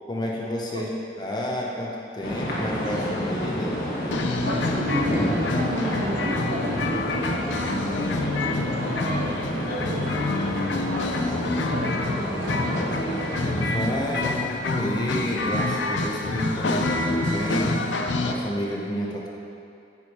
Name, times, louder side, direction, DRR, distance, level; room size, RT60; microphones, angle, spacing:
voice 1, 0.1-0.9 1.2-3.8 13.5-17.8 18.2-19.3, equal, 25° left, -2 dB, 0.7 m, -30 dB
sound 1, 2.2-13.7, equal, 55° left, 1.5 m, -29 dB
sound 2, 4.1-18.3, left 2 dB, 85° left, 0.6 m, -27 dB
voice 2, 4.4-10.1 10.5-12.8, right 1 dB, 70° right, 0 dB, 0.9 m, -33 dB
9.0 x 4.8 x 4.2 m, 2.6 s
head